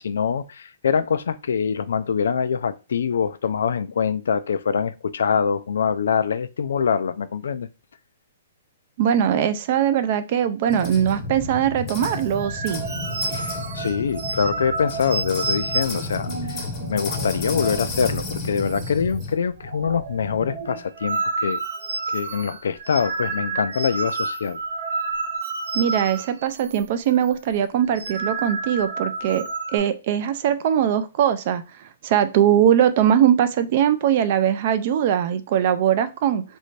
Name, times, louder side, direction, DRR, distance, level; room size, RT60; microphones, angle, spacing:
voice 1, 0.0-7.7 13.3-21.6 22.1-24.6, left 6 dB, 80° left, 0.3 m, -24 dB
voice 2, 9.0-12.8 25.7-31.6 32.0-36.4, right 9 dB, 40° right, 0.4 m, -21 dB
sound 1, 10.7-19.3, left 3 dB, 20° left, 0.7 m, -32 dB
sound 2, 12.0-18.0 18.2-18.4 18.7-19.2 19.5-26.8 27.1-27.3 27.8-29.8, right 3 dB, 75° right, 0.9 m, -30 dB
3.2 x 2.6 x 3.1 m
hypercardioid pair, 165°, 0 cm